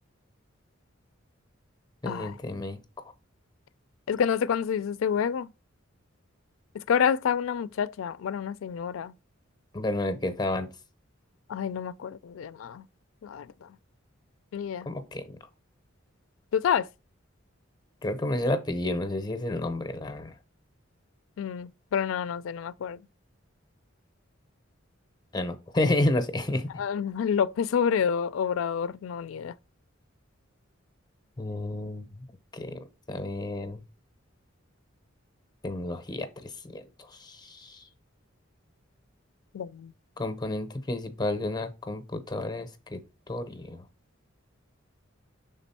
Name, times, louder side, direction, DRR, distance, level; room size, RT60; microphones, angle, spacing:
voice 1, 2.0-2.8 9.7-10.7 14.9-15.2 18.0-20.3 25.3-26.8 31.4-32.0 32.5-32.8 33.1-33.8 35.6-36.8 37.1-37.8 40.2-43.0 43.3-43.8, left 1 dB, 20° left, 0.6 m, -30 dB
voice 2, 4.1-5.5 6.7-9.1 11.5-12.8 13.2-13.5 14.5-14.9 16.5-16.9 21.4-23.0 26.8-29.5 39.5-39.9, left 7 dB, 80° left, 0.4 m, -28 dB
6.0 x 3.8 x 4.2 m
head